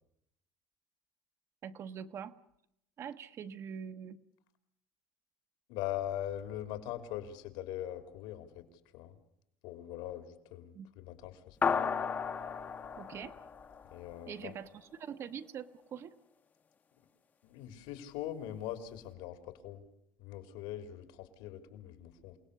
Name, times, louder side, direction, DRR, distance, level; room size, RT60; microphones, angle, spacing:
voice 1, 1.6-2.4 3.0-4.2 10.7-10.9 13.0-13.4 14.3-16.2, right 7 dB, 35° right, 10 dB, 0.9 m, -44 dB
voice 2, 5.7-8.7 8.9-9.1 9.6-11.8 13.9-14.5 17.4-19.8 20.2-22.4, left 12 dB, 75° left, 10 dB, 3.3 m, -41 dB
sound 1, 11.6-14.3, left 6 dB, 20° left, 0.9 m, -34 dB
28.0 x 19.0 x 8.2 m, 0.77 s
cardioid pair, 180°, 8 cm